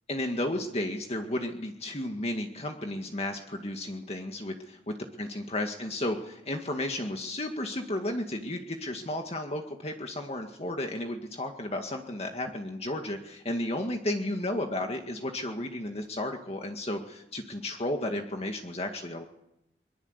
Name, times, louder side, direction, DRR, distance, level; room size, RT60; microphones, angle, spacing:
voice 1, 0.1-19.2, left 1 dB, 35° left, 3 dB, 2.0 m, -33 dB
23.0 x 22.5 x 8.2 m, 0.81 s
head